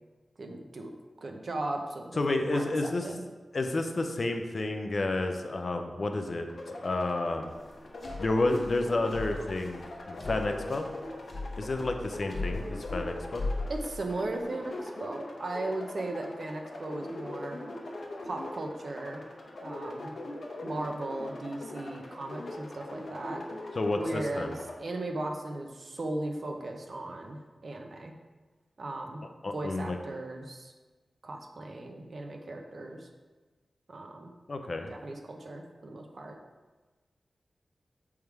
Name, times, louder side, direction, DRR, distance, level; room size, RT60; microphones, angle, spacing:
voice 1, 0.4-0.9 1.2-3.2 13.7-17.6 18.2-19.2 19.6-20.1 20.6-23.4 23.9-28.1 28.8-30.7 31.2-33.1 33.9-34.3 34.9-36.4, right 2 dB, 55° right, 3 dB, 0.7 m, -37 dB
voice 2, 2.2-3.0 3.5-7.5 8.2-9.8 10.1-10.9 11.6-13.4 23.8-24.5 29.4-30.0 34.5-34.9, left 2 dB, 50° left, 5 dB, 0.6 m, -30 dB
sound 1, 6.5-24.8, left 1 dB, 70° left, 0.9 m, -42 dB
sound 2, 7.5-14.4, left 2 dB, 25° left, 1.8 m, -39 dB
6.5 x 3.6 x 4.6 m, 1.3 s
wide cardioid pair, 100°, 0 cm